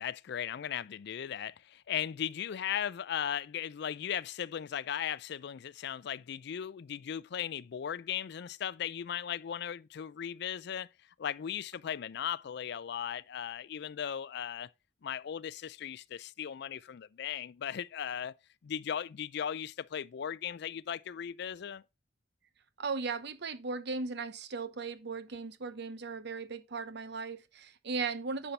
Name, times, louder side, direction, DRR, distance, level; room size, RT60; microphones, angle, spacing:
voice 1, 0.0-10.9 11.2-14.7 15.0-18.4 18.6-21.8, left 9 dB, 60° left, 0.4 m, -37 dB
voice 2, 22.8-28.5, right 4 dB, 65° right, 0.8 m, -37 dB
9.9 x 5.6 x 3.2 m
head